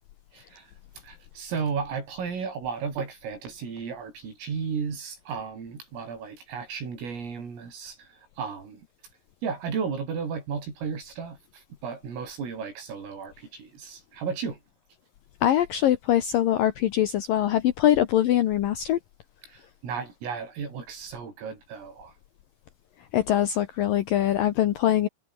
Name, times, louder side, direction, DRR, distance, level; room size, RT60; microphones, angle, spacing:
voice 1, 0.3-8.9 9.4-14.6 19.4-22.2, right 6 dB, 80° right, 9.4 m, -34 dB
voice 2, 15.4-19.0 23.1-25.1, left 12 dB, 90° left, 1.9 m, -23 dB
omnidirectional pair, 5.9 m